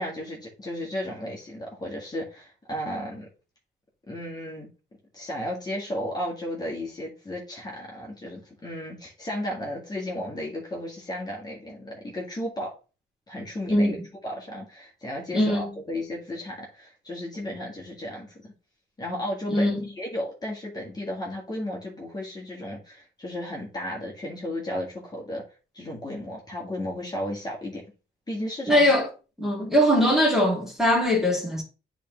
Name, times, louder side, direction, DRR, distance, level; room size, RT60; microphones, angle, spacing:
voice 1, 0.0-3.3 4.1-4.7 5.1-12.7 13.3-14.0 14.2-18.5 19.0-25.4 25.7-27.8 28.3-28.9, left 1 dB, 20° left, 2.0 m, -34 dB
voice 2, 15.3-15.7 19.5-19.8 28.7-29.1 29.4-31.6, equal, ahead, 2.4 m, -21 dB
8.4 x 3.8 x 3.2 m
cardioid pair, 90°, 20 cm